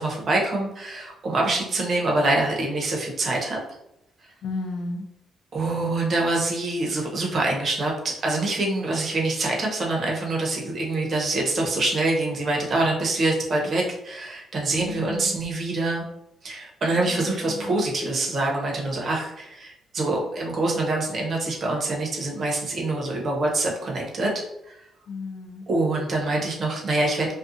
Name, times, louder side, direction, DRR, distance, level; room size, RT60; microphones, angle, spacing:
voice 1, 0.0-3.6 5.5-7.9 8.2-16.1 16.4-24.3 24.7-24.8 25.7-27.3, right 2 dB, 50° right, -1 dB, 0.9 m, -25 dB
voice 2, 4.4-5.0 14.8-15.3 17.0-17.7 25.1-25.7, left 3 dB, 75° left, 3 dB, 0.5 m, -34 dB
2.5 x 2.3 x 2.6 m, 0.84 s
cardioid pair, 90°, 0 cm